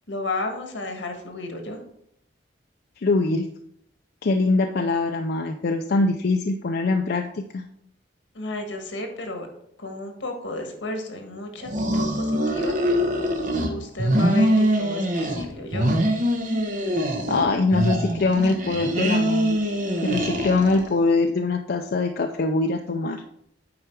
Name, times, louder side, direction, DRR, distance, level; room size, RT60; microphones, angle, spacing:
voice 1, 0.1-1.8 8.3-9.5 9.8-12.8 13.7-15.9, left 2 dB, 80° left, 4 dB, 1.5 m, -33 dB
voice 2, 3.0-3.5 4.2-7.6 17.3-19.7 20.0-23.2, left 3 dB, 55° left, 5 dB, 0.5 m, -23 dB
sound 1, 11.6-13.7 14.0-15.5 15.7-17.5 17.7-20.9, equal, 45° right, 1.1 m, -23 dB
8.6 x 4.7 x 4.5 m, 0.72 s
head